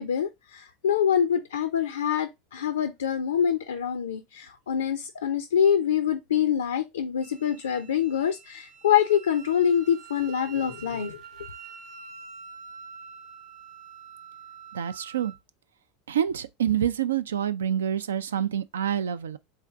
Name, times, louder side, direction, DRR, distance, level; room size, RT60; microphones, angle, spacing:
voice 1, 0.0-11.2, left 8 dB, 70° left, 0.4 m, -25 dB
Wind instrument woodwind instrument, 7.2-15.4, right 6 dB, 50° right, 0.8 m, -46 dB
voice 2, 14.7-15.3 16.1-19.4, right 9 dB, 70° right, 0.3 m, -27 dB
3.7 x 3.2 x 3.7 m
figure-of-eight pair, 75°, 0 cm